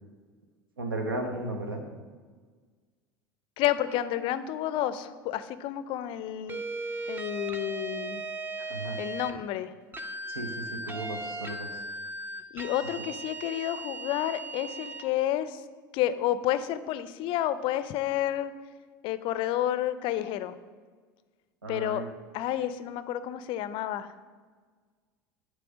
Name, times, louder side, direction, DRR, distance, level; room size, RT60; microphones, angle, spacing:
voice 1, 0.8-1.8 8.7-9.0 10.3-11.8 21.6-22.1, right 2 dB, 85° right, 4 dB, 1.0 m, -35 dB
voice 2, 3.6-6.6 7.1-8.2 9.0-9.7 12.5-15.6 15.9-18.5 19.0-20.5 21.7-22.0 22.3-24.1, left 12 dB, 50° left, 14 dB, 0.4 m, -30 dB
sound 1, 6.5-9.4 9.9-15.1, right 2 dB, 15° right, 0.7 m, -37 dB
7.7 x 3.3 x 6.1 m, 1.5 s
hypercardioid pair, 75°, 12 cm